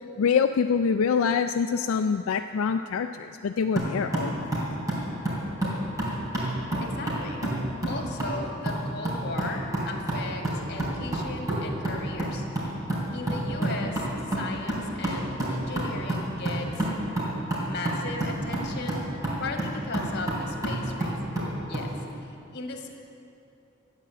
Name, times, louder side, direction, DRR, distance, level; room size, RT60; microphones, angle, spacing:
voice 1, 0.2-4.5, left 6 dB, 85° left, 7 dB, 0.4 m, -25 dB
sound 1, 3.8-21.9, right 1 dB, 15° right, 3.6 m, -30 dB
voice 2, 6.8-7.4 7.9-12.5 13.1-16.9 17.6-19.0 19.4-21.2 21.7-21.9 22.2-22.9, left 3 dB, 55° left, 3 dB, 1.6 m, -37 dB
12.5 x 9.0 x 7.5 m, 2.6 s
head